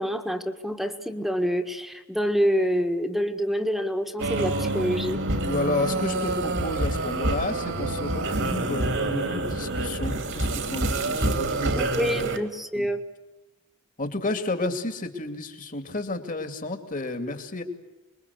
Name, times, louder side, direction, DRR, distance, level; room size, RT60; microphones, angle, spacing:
voice 1, 0.0-5.2 11.7-13.0, equal, ahead, 6 dB, 1.6 m, -27 dB
sound 1, 4.2-12.4, right 2 dB, 65° right, 2.7 m, -27 dB
voice 2, 5.5-12.3 12.7-12.9 14.0-17.6, left 2 dB, 40° left, 7 dB, 2.5 m, -31 dB
27.0 x 21.5 x 8.3 m, 1.0 s
head